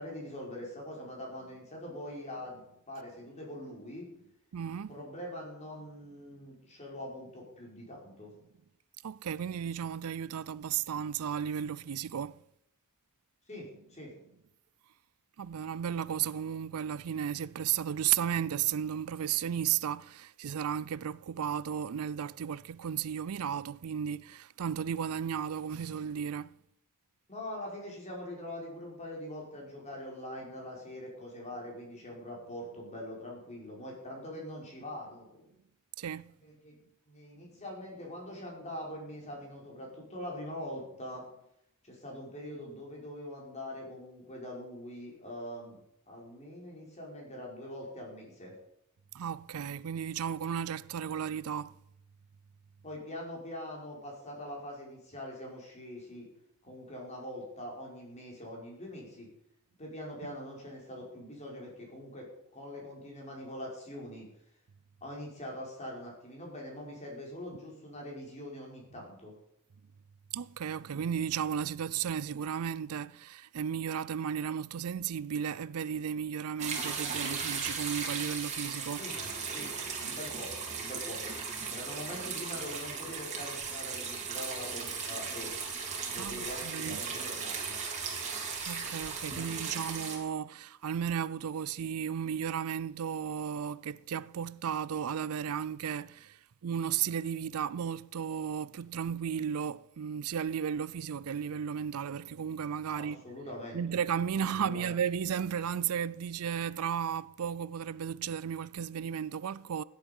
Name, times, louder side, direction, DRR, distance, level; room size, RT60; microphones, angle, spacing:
voice 1, 0.0-4.1 4.9-8.3 13.5-14.1 27.3-35.5 36.4-36.8 37.1-41.2 41.8-45.8 46.1-48.5 52.8-56.3 56.6-59.3 59.8-64.3 65.0-69.3 78.9-79.2 79.5-79.7 80.0-81.2 81.7-85.5 86.1-87.8 102.9-104.0 104.6-105.0, left 1 dB, 30° left, 5.4 m, -43 dB
voice 2, 4.5-4.9 9.0-12.4 15.4-26.5 36.0-36.3 49.1-51.7 70.3-79.0 86.2-87.0 88.7-103.2 103.7-109.8, right 8 dB, 80° right, 0.4 m, -34 dB
sound 1, 76.6-90.2, right 5 dB, 35° right, 3.3 m, -37 dB
16.5 x 10.5 x 5.4 m
head